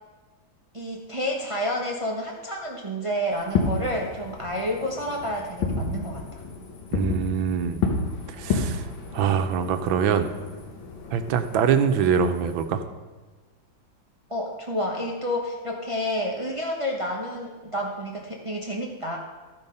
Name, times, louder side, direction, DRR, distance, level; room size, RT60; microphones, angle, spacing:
voice 1, 0.7-6.2 14.3-19.2, equal, 25° right, -1 dB, 0.7 m, -29 dB
Fireworks, 3.4-12.7, left 4 dB, 80° left, 1.9 m, -31 dB
voice 2, 6.9-7.8 8.3-8.9 9.1-10.3 11.1-12.8, right 7 dB, 85° right, 8 dB, 1.5 m, -24 dB
13.5 x 5.3 x 5.4 m, 1.3 s
omnidirectional pair, 2.1 m